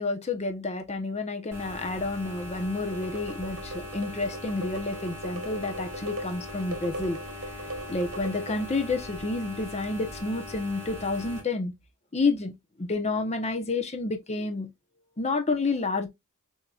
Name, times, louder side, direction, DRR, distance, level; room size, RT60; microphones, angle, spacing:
voice 1, 0.0-7.2 7.9-11.7 12.1-12.5 12.8-14.7 15.2-16.1, left 3 dB, 30° left, 0.8 m, -29 dB
sound 1, 1.5-11.4, left 1 dB, 15° right, 2.5 m, -41 dB
sound 2, 2.9-8.9, right 1 dB, 70° right, 1.3 m, -39 dB
6.7 x 2.9 x 2.3 m
head